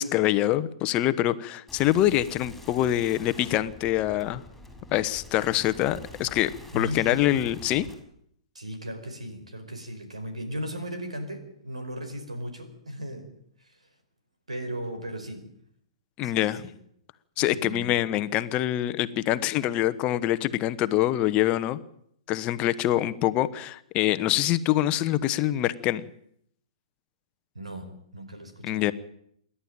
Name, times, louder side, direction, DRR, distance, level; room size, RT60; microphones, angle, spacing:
voice 1, 0.0-4.4 4.9-7.9 16.2-16.6 17.4-21.8 22.3-26.1 28.6-28.9, left 13 dB, 35° left, 13 dB, 1.1 m, -25 dB
sound 1, 1.7-7.9, left 1 dB, 5° left, 6.7 m, -46 dB
voice 2, 6.7-7.7 8.5-13.3 13.6-13.9 14.5-15.4 16.2-16.7 17.4-17.9 22.8-23.0 27.5-28.9, equal, 90° right, 7 dB, 4.9 m, -37 dB
27.0 x 11.5 x 8.9 m, 0.70 s
figure-of-eight pair, 115°, 3 cm